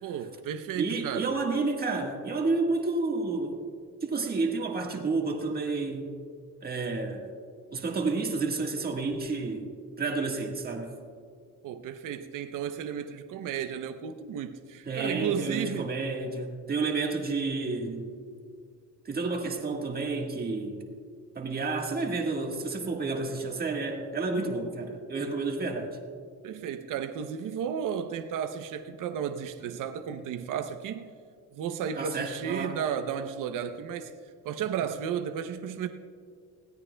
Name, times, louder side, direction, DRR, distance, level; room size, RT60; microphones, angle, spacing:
voice 1, 0.0-1.3 11.6-15.9 26.4-31.1 31.5-34.1 34.4-35.9, right 8 dB, 75° right, 7 dB, 0.7 m, -33 dB
voice 2, 0.8-3.6 4.0-6.1 6.6-7.3 7.7-10.9 14.8-18.1 19.0-20.9 21.3-26.0 32.0-32.8, right 3 dB, 30° right, 1 dB, 1.5 m, -30 dB
20.5 x 16.5 x 2.2 m, 2.1 s
cardioid pair, 160°, 32 cm